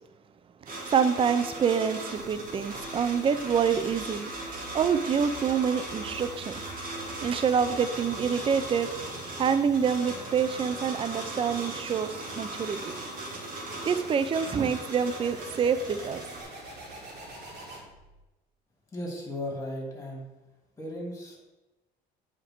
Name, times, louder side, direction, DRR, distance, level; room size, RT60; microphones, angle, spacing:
sound 1, 0.7-16.4, right 2 dB, 55° right, 2.5 m, -39 dB
voice 1, 0.9-4.3 4.7-6.5 7.2-8.9 9.3-12.9 13.9-16.2, right 7 dB, 35° right, 11 dB, 0.5 m, -26 dB
sound 2, 2.1-18.2, right 1 dB, 75° right, 3.0 m, -46 dB
voice 2, 18.9-20.3 20.8-21.4, left 1 dB, 15° left, -1 dB, 3.0 m, -36 dB
9.0 x 5.1 x 4.5 m, 1.0 s
cardioid pair, 110°, 17 cm